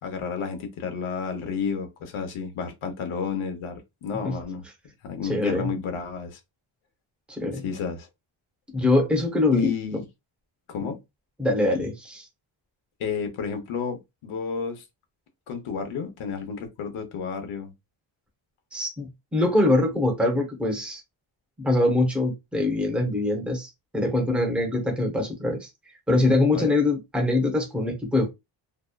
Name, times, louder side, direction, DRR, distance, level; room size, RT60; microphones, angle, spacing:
voice 1, 0.0-4.6 5.0-6.4 7.6-8.1 9.5-10.1 10.7-11.0 13.0-14.8 15.5-17.7 26.5-26.7, left 6 dB, 85° left, 0.8 m, -31 dB
voice 2, 5.2-5.7 7.3-7.6 8.7-10.0 11.4-12.3 18.7-21.0 21.6-25.7 26.1-28.3, left 2 dB, ahead, 0.6 m, -23 dB
2.8 x 2.2 x 2.2 m
wide cardioid pair, 170°, 48 cm